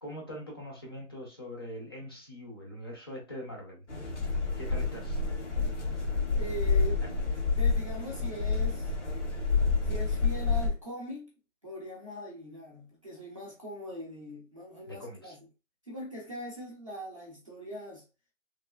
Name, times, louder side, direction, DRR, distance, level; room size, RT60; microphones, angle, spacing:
voice 1, 0.0-3.8 4.5-5.2 14.9-15.3, equal, 20° left, 0.6 m, -42 dB
sound 1, 3.9-10.7, left 4 dB, 60° left, 1.1 m, -29 dB
voice 2, 6.4-7.0 7.6-8.9 9.8-11.3 11.6-15.4 15.8-18.0, equal, 25° right, 0.6 m, -41 dB
3.1 x 2.6 x 2.2 m
figure-of-eight pair, 160°, 38 cm